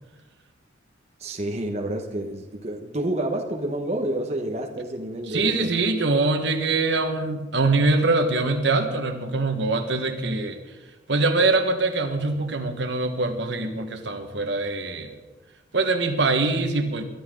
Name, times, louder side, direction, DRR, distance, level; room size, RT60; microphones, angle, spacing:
voice 1, 1.2-5.7 6.1-6.2, right 1 dB, 35° right, 2 dB, 1.2 m, -29 dB
voice 2, 5.3-10.6 11.1-15.1 15.7-17.0, right 3 dB, 65° right, 5 dB, 1.5 m, -23 dB
22.5 x 12.0 x 3.9 m, 1.2 s
head